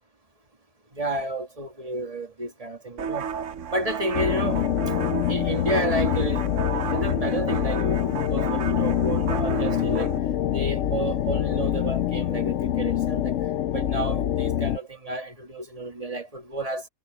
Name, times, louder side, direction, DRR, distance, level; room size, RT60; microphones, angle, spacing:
voice 1, 0.9-3.3 3.7-4.6 5.3-6.5 6.9-10.1 10.5-13.4 13.7-16.9, right 2 dB, 25° right, 2.3 m, -31 dB
sound 1, 3.0-10.2, right 7 dB, 60° right, 1.0 m, -33 dB
sound 2, 4.1-14.8, left 11 dB, 65° left, 0.9 m, -25 dB
omnidirectional pair, 1.6 m